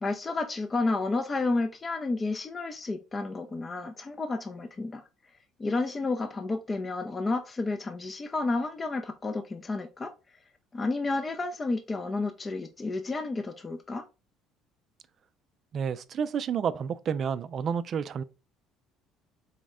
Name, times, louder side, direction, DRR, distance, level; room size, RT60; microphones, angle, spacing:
voice 1, 0.0-5.0 5.6-10.1 10.7-14.0, left 3 dB, 25° left, 0.4 m, -31 dB
voice 2, 15.7-18.2, right 7 dB, 45° right, 0.3 m, -30 dB
4.3 x 2.1 x 3.5 m
cardioid pair, 110°, 0 cm